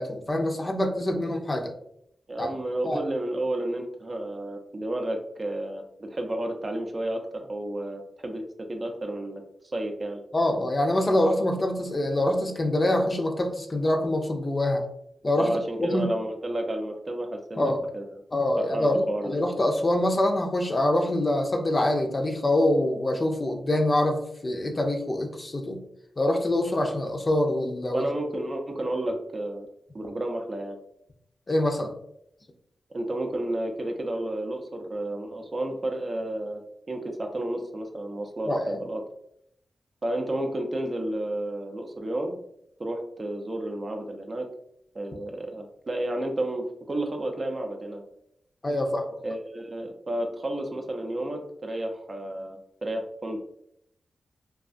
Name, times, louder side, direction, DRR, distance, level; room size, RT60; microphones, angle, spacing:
voice 1, 0.0-1.7 2.4-2.5 2.8-3.0 10.3-14.8 15.2-15.5 15.8-16.1 17.6-17.8 18.3-25.8 26.2-28.1 31.5-31.9 38.5-38.8 48.6-49.1, left 1 dB, 40° left, 3 dB, 0.5 m, -25 dB
voice 2, 2.3-8.4 8.7-9.4 9.7-10.2 15.4-17.6 17.9-18.0 18.6-19.4 27.9-29.7 29.9-30.8 32.9-39.0 40.0-42.4 42.8-44.5 44.9-48.0 49.2-53.4, right 1 dB, 45° right, 3 dB, 0.5 m, -31 dB
2.3 x 2.3 x 2.5 m, 0.73 s
cardioid pair, 45°, 0 cm